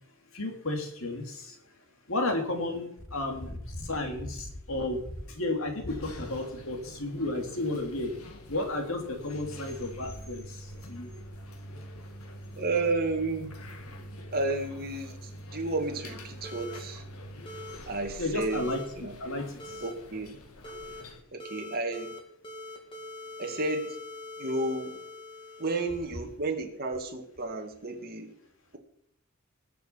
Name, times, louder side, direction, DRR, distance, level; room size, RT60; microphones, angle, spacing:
voice 1, 0.3-1.5 2.1-5.0 5.3-8.1 8.5-10.4 10.9-11.1 18.2-18.8 19.2-19.4, left 2 dB, 65° left, 4 dB, 2.7 m, -32 dB
sound 1, 5.9-21.2, equal, 80° left, 1.8 m, -45 dB
voice 2, 12.5-13.6 14.3-17.0 17.9-19.1 19.8-20.4 21.3-22.2 23.4-24.0 24.4-25.0 25.6-28.3, right 2 dB, 45° right, 3 dB, 2.2 m, -32 dB
sound 2, 16.4-16.8 17.4-17.7 18.5-18.8 19.6-19.9 20.6-21.0 21.4-22.2 22.4-26.2, left 2 dB, 25° left, 2.3 m, -43 dB
20.0 x 6.8 x 5.8 m, 0.71 s
head